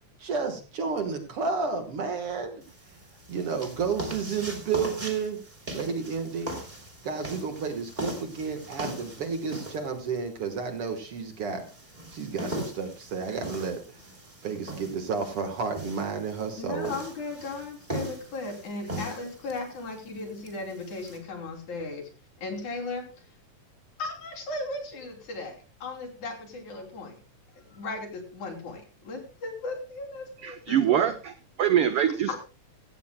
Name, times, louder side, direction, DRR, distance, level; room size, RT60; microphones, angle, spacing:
voice 1, 0.2-2.6 3.3-5.4 5.7-6.5 7.0-11.6 12.1-13.8 14.4-16.9, right 5 dB, 55° right, 6 dB, 2.0 m, -31 dB
sound 1, 2.6-21.2, right 1 dB, 15° right, 2.8 m, -40 dB
voice 2, 16.6-22.1 22.4-23.1 24.0-27.2 27.6-31.1 32.3-32.4, left 3 dB, 70° left, 2 dB, 4.5 m, -36 dB
voice 3, 30.4-31.3 31.6-32.3, right 10 dB, 80° right, 9 dB, 1.3 m, -23 dB
16.5 x 15.5 x 2.2 m, 0.34 s
omnidirectional pair, 3.6 m